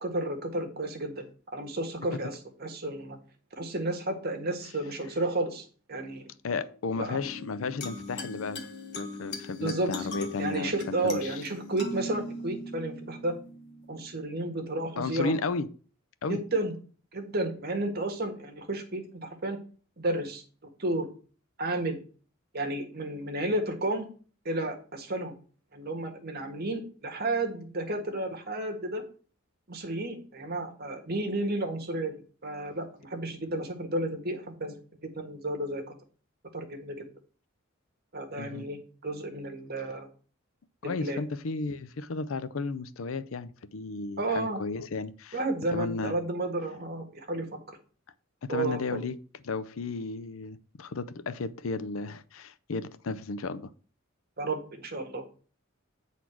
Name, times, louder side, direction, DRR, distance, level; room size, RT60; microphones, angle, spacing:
voice 1, 0.0-1.2 1.5-3.2 3.6-6.3 7.0-7.2 9.6-10.1 10.4-13.3 13.9-15.3 16.3-16.7 17.1-19.6 20.0-20.4 20.8-21.1 21.6-22.0 22.5-24.1 24.4-25.3 25.7-29.0 29.7-35.9 36.5-37.0 38.1-40.1 40.8-41.2 44.2-44.6 45.3-47.5 48.5-49.0 54.4-55.2, right 2 dB, 50° right, 1.7 m, -32 dB
voice 2, 6.4-8.7 9.0-11.4 15.0-15.7 16.2-16.4 38.4-38.7 40.8-45.4 45.7-46.2 48.4-49.2 49.4-53.7, left 3 dB, 75° left, 0.6 m, -34 dB
sound 1, 7.2-14.2, left 1 dB, 55° left, 1.5 m, -39 dB
8.3 x 4.1 x 6.0 m
head